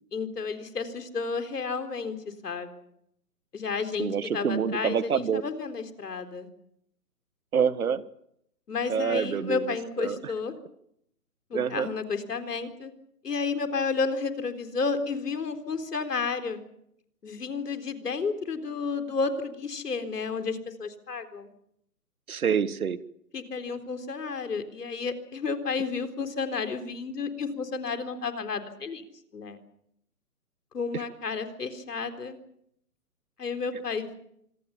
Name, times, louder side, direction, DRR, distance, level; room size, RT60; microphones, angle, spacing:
voice 1, 0.1-2.7 3.5-6.5 8.7-10.5 11.5-12.9 13.2-16.6 17.2-21.5 23.3-29.0 29.3-29.6 30.7-32.4 33.4-34.1, left 4 dB, 80° left, 8 dB, 4.0 m, -31 dB
voice 2, 4.0-5.4 7.5-8.0 8.9-9.6 10.0-10.3 11.5-11.9 22.3-23.0 30.9-31.0, right 7 dB, 65° right, 15 dB, 1.6 m, -27 dB
26.0 x 22.0 x 7.2 m, 0.73 s
hypercardioid pair, 160°, 46 cm